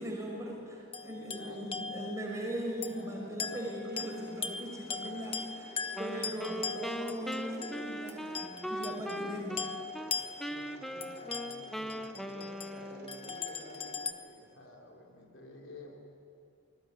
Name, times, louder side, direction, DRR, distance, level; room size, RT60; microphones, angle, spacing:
voice 1, 0.0-9.6, right 1 dB, 15° right, -1 dB, 5.9 m, -39 dB
sound 1, 0.9-2.3 2.8-3.0 3.4-9.3 9.6-12.7 13.1-14.1, left 5 dB, 25° left, 1.2 m, -40 dB
voice 2, 1.1-1.9 2.8-3.7 9.9-16.0, left 1 dB, 60° left, 0 dB, 3.9 m, -52 dB
Mechanisms, 3.8-14.0, right 1 dB, 45° right, 5.3 m, -54 dB
Wind instrument woodwind instrument, 5.9-10.1 10.4-13.3, equal, ahead, 0.8 m, -40 dB
29.0 x 20.5 x 9.8 m, 2.7 s
head